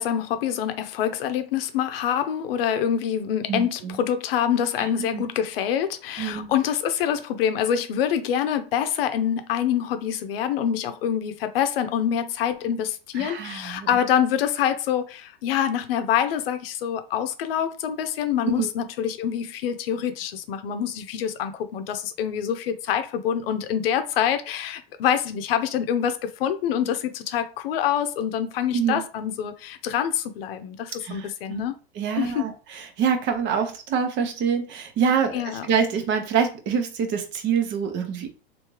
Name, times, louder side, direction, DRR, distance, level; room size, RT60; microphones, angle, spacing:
voice 1, 0.0-31.8 32.2-32.5 35.3-35.7, left 9 dB, 70° left, 0.7 m, -26 dB
voice 2, 3.5-4.0 4.8-5.2 6.2-6.5 13.1-13.9 18.4-18.7 28.7-29.0 31.0-31.6 31.9-38.3, right 6 dB, 40° right, 0.9 m, -26 dB
3.3 x 2.7 x 3.1 m
hypercardioid pair, 115°, 30 cm